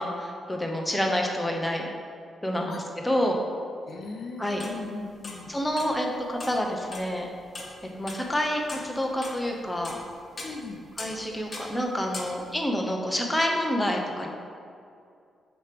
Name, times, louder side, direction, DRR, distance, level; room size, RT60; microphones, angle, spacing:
voice 1, 0.0-1.9 2.4-3.4 4.4-4.6 5.5-7.3 7.9-10.0 11.0-14.3, equal, 10° left, 1 dB, 0.8 m, -28 dB
voice 2, 3.9-5.5 10.4-10.8, left 3 dB, 60° left, 2 dB, 0.7 m, -38 dB
sound 1, 4.5-5.0 5.2-5.9 6.4-7.2 7.5-8.3 8.7-10.0 10.4-11.2 11.5-11.7 12.1-12.3, left 2 dB, 40° left, 1.2 m, -40 dB
6.3 x 3.0 x 5.1 m, 2.4 s
cardioid pair, 75°, 0 cm